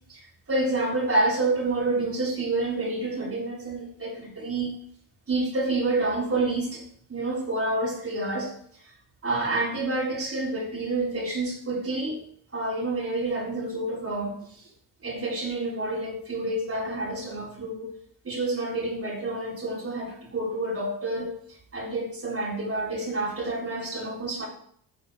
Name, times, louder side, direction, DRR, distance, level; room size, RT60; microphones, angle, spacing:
voice 1, 0.5-4.7 5.3-6.8 7.1-8.5 9.2-12.2 12.5-14.6 15.0-17.9 18.2-24.5, right 2 dB, 35° right, -3 dB, 3.9 m, -28 dB
11.0 x 10.5 x 4.9 m, 0.63 s
cardioid pair, 125°, 42 cm